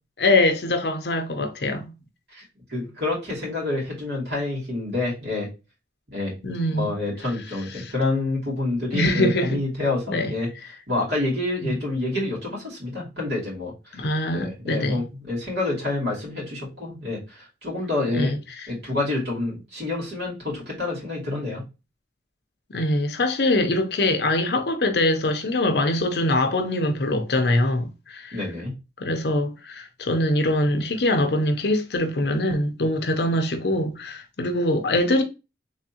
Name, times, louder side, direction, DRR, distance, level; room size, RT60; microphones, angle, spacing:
voice 1, 0.2-1.9 6.4-6.9 7.8-7.9 8.9-9.6 10.1-10.3 11.6-11.8 14.0-15.0 18.1-18.4 22.7-28.4 29.0-35.2, left 1 dB, 65° left, 0.6 m, -23 dB
voice 2, 2.7-5.5 6.1-6.3 6.7-10.5 10.9-14.1 14.3-18.3 18.7-21.6 28.3-28.7, left 2 dB, 65° right, 2.5 m, -28 dB
3.5 x 3.5 x 2.8 m
head